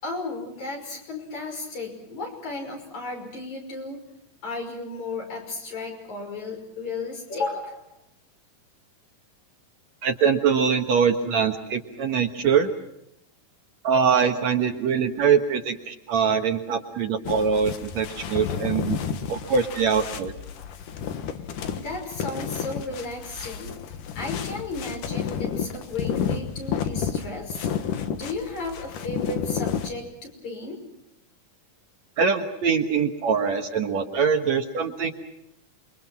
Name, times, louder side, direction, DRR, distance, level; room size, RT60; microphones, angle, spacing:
voice 1, 0.0-4.0 4.4-8.0 21.7-23.7 24.1-27.7 28.2-30.8, left 3 dB, 55° left, 2 dB, 6.9 m, -34 dB
voice 2, 10.0-12.7 13.8-19.0 19.3-20.3 32.2-35.1, right 6 dB, 60° right, 4 dB, 2.3 m, -23 dB
sound 1, 17.2-29.9, left 8 dB, 75° left, 3.0 m, -31 dB
28.5 x 23.5 x 6.1 m, 0.81 s
omnidirectional pair, 3.9 m